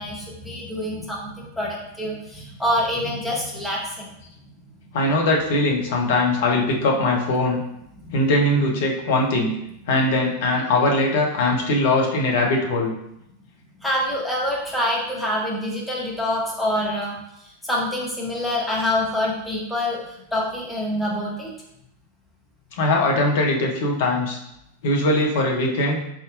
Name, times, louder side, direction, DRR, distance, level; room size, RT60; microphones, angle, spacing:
voice 1, 0.0-4.1 8.0-8.2 13.8-17.2 17.6-21.5, left 1 dB, 5° left, -4 dB, 1.0 m, -26 dB
voice 2, 4.9-7.6 8.1-9.5 9.9-12.9 22.8-24.4 24.8-26.0, left 2 dB, 55° left, 0 dB, 0.7 m, -21 dB
4.0 x 3.6 x 2.4 m, 0.80 s
figure-of-eight pair, 90°, 0 cm